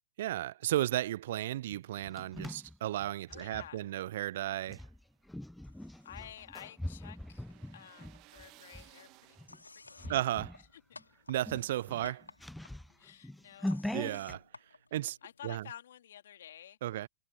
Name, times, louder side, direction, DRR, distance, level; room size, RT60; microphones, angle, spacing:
voice 1, 0.2-4.8 10.1-10.6 11.3-12.3 13.9-14.4 14.9-15.2 15.4-15.6 16.8-17.1, right 13 dB, 60° right, 0.3 m, -34 dB
sound 1, 1.7-3.7 4.7-8.9 9.4-9.6 10.0-10.7 11.0-11.1 11.4-14.4, left 1 dB, 5° left, 0.6 m, -42 dB
voice 2, 3.3-4.1 6.0-7.5 7.7-9.4 9.7-10.2 10.7-11.0 13.0-13.8 15.2-17.0, left 10 dB, 65° left, 2.9 m, -51 dB
sound 2, 4.9-9.9, right 22 dB, 40° right, 1.4 m, -62 dB
sound 3, 5.6-6.4 6.7-7.7 8.0-15.5, left 3 dB, 90° left, 3.6 m, -56 dB
figure-of-eight pair, 105°, 0 cm